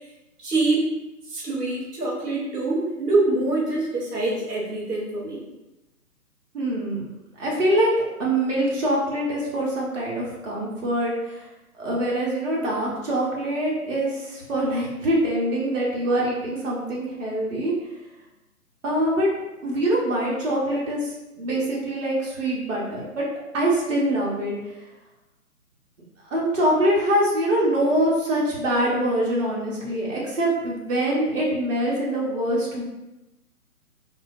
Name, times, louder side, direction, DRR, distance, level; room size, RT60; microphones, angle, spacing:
voice 1, 0.4-1.0 1.3-5.4, right 2 dB, 85° right, -4 dB, 0.8 m, -25 dB
voice 2, 6.5-7.0 7.4-7.9 8.2-11.4 11.8-17.7 18.8-19.3 19.6-23.2 23.5-24.5 26.3-32.8, right 1 dB, 55° right, -4 dB, 0.8 m, -24 dB
2.2 x 2.1 x 2.6 m, 1.0 s
figure-of-eight pair, 135°, 46 cm